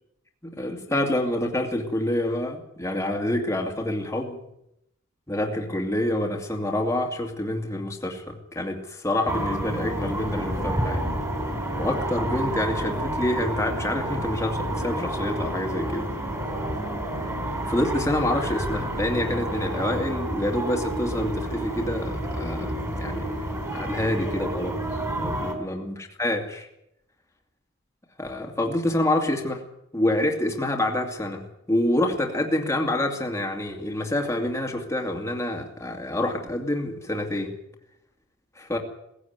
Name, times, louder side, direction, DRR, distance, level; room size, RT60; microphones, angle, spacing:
voice 1, 0.4-4.4 5.3-11.1 11.8-16.1 17.7-24.8 25.1-26.7 28.2-29.6 29.9-37.5 38.7-38.8, left 1 dB, 15° left, 1 dB, 2.5 m, -27 dB
sound 1, 9.3-25.6, right 1 dB, 15° right, 3.8 m, -29 dB
19.0 x 16.0 x 9.4 m, 0.82 s
head